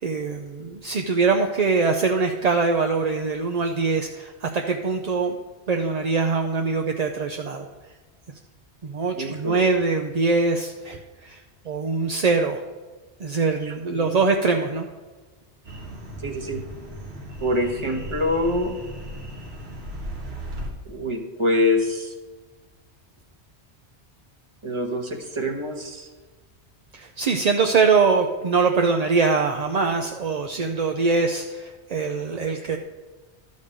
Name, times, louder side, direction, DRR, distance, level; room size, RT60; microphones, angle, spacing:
voice 1, 0.0-5.4 5.7-7.7 8.8-12.6 13.2-14.9 26.9-32.8, right 4 dB, 45° right, 4 dB, 0.6 m, -23 dB
voice 2, 9.1-9.7 13.6-14.2 16.2-16.6 17.4-18.7 20.9-22.1 24.6-26.1, left 1 dB, 25° right, 3 dB, 1.2 m, -25 dB
sound 1, 15.6-20.7, equal, 65° right, 2.0 m, -36 dB
12.5 x 5.3 x 6.5 m, 1.3 s
omnidirectional pair, 1.1 m